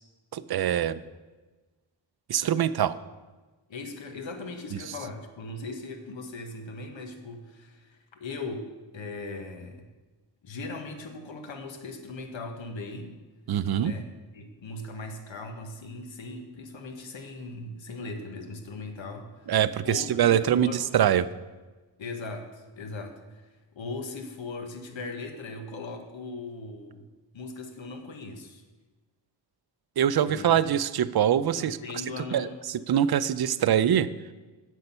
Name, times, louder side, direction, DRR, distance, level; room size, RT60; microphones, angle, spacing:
voice 1, 0.3-1.0 2.3-2.9 13.5-13.9 19.5-21.3 30.0-31.8 32.3-34.1, right 10 dB, 55° right, 15 dB, 0.5 m, -24 dB
voice 2, 3.7-9.9 10.4-13.2 13.7-14.1 14.3-19.5 19.8-20.9 22.0-27.1 27.3-28.6 30.3-30.5 31.6-32.7, left 3 dB, 75° left, 5 dB, 1.2 m, -39 dB
8.1 x 6.5 x 5.5 m, 1.2 s
cardioid pair, 60°, 46 cm